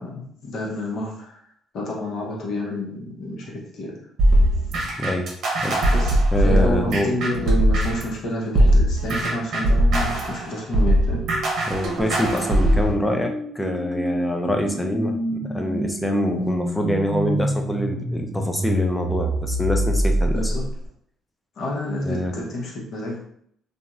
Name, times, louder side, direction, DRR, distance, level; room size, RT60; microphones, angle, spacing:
voice 1, 0.0-1.4 1.7-3.9 5.9-11.2 20.3-20.6 21.6-23.2, left 1 dB, 65° left, -2 dB, 1.0 m, -29 dB
sound 1, 4.2-8.1 8.6-12.9, right 1 dB, 65° right, 0.8 m, -20 dB
voice 2, 5.0-5.3 5.6-5.8 6.3-7.5 11.7-20.5 22.0-22.3, left 1 dB, 10° left, 3 dB, 0.5 m, -25 dB
sound 2, 10.8-20.9, right 1 dB, 20° right, 0.9 m, -27 dB
2.9 x 2.4 x 2.4 m, 0.68 s
supercardioid pair, 80°, 0 cm